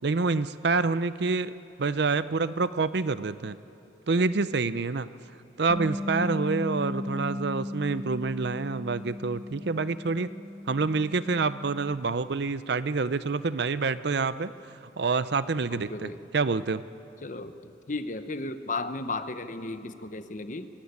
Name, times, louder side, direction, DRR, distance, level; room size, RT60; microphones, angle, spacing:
voice 1, 0.0-3.6 4.1-5.1 5.6-10.4 10.7-14.5 15.0-16.8, right 4 dB, 55° right, 14 dB, 0.6 m, -27 dB
Bass guitar, 5.7-11.9, left 1 dB, ahead, 1.7 m, -36 dB
voice 2, 15.7-16.2 17.2-20.7, left 2 dB, 40° left, 10 dB, 0.9 m, -35 dB
22.5 x 17.0 x 9.5 m, 2.7 s
head